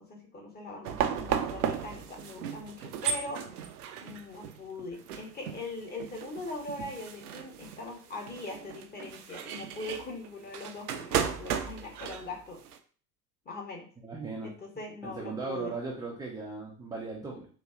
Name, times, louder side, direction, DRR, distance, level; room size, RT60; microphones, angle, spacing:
voice 1, 0.0-3.4 4.0-12.6 13.4-13.9 14.4-15.7, left 2 dB, 20° left, 0 dB, 1.0 m, -41 dB
sound 1, 0.8-12.8, right 8 dB, 65° right, 0.6 m, -35 dB
voice 2, 14.0-14.5 15.0-17.5, right 3 dB, 10° right, -3 dB, 0.5 m, -37 dB
4.0 x 2.7 x 2.4 m, 0.42 s
figure-of-eight pair, 70°, 49 cm